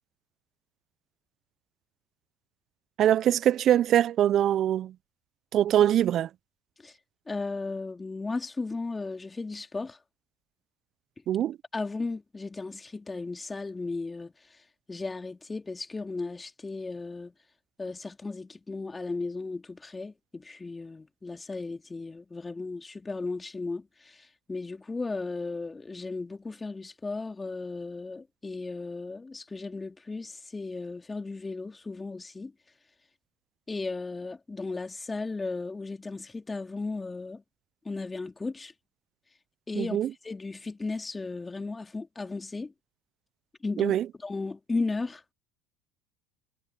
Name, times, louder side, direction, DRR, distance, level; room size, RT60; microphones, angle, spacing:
voice 1, 3.0-4.9 5.5-6.3 11.3-11.6 39.8-40.1 43.8-44.0, right 11 dB, 45° right, 0.9 m, -23 dB
voice 2, 7.3-10.0 11.7-17.3 17.8-32.5 33.7-37.4 37.8-38.7 39.7-42.7 43.6-44.0 44.2-45.2, left 3 dB, 20° left, 3.0 m, -35 dB
hypercardioid pair, 75°, 0 cm